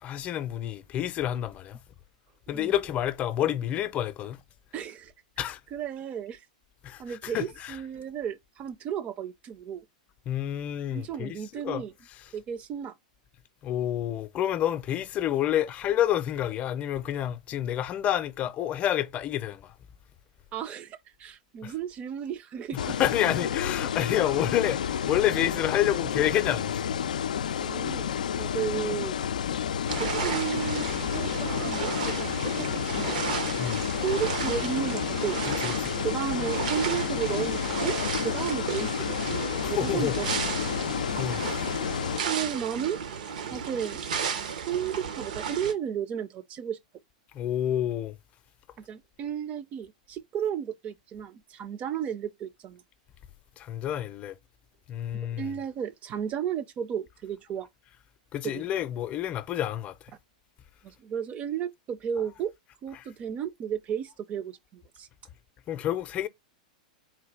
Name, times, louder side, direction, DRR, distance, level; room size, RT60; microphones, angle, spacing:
voice 1, 0.0-1.8 2.5-4.4 5.4-5.6 6.8-7.8 10.3-11.8 12.1-12.3 13.6-19.7 21.6-21.7 22.7-26.9 33.6-33.8 35.5-36.0 39.0-39.1 39.6-40.1 41.1-41.4 47.3-48.2 53.6-54.4 54.9-55.5 58.3-60.1 62.9-63.1 65.7-66.3, left 11 dB, 35° left, 0.5 m, -29 dB
voice 2, 4.7-5.1 5.7-6.4 7.0-9.8 10.9-11.9 12.3-12.9 20.5-23.0 27.6-29.2 30.0-33.2 34.0-35.4 36.0-38.0 38.2-40.5 42.3-43.0 43.5-44.0 44.7-46.8 48.8-52.8 55.4-57.7 58.4-58.7 60.8-62.5 62.8-65.1, right 9 dB, 35° right, 0.5 m, -33 dB
sound 1, 22.8-42.2, left 8 dB, 85° left, 0.3 m, -30 dB
sound 2, 29.9-45.7, right 6 dB, 75° right, 0.8 m, -34 dB
4.0 x 2.3 x 4.6 m
hypercardioid pair, 110°, 4 cm